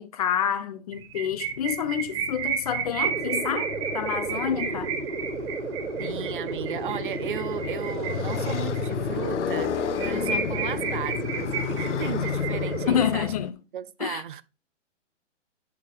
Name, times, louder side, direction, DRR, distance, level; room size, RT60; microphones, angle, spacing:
voice 1, 0.0-4.9 12.8-13.5 14.0-14.2, left 9 dB, 30° left, 0.7 m, -28 dB
sound 1, 0.9-8.9 9.2-9.3 9.6-9.7 10.0-13.1, right 7 dB, 25° right, 1.2 m, -32 dB
Motorcycle, 1.0-13.5, left 10 dB, 70° left, 0.7 m, -33 dB
sound 2, 3.0-13.0, right 3 dB, 70° right, 2.6 m, -33 dB
voice 2, 4.3-5.0 5.9-13.3 13.7-14.4, right 9 dB, 45° right, 0.6 m, -36 dB
8.4 x 5.4 x 3.9 m
hypercardioid pair, 160°, 37 cm